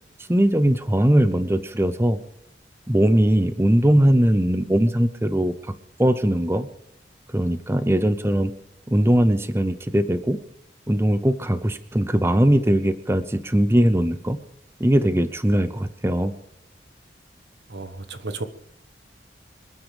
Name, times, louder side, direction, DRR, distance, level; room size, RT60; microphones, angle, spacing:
voice 1, 0.3-2.2 2.9-5.5 6.0-6.7 7.3-8.5 8.9-10.4 10.9-14.4 14.8-16.3, right 1 dB, 15° right, 11 dB, 0.7 m, -20 dB
voice 2, 17.7-18.5, right 3 dB, 70° right, 10 dB, 1.4 m, -33 dB
26.5 x 9.6 x 5.1 m, 0.73 s
head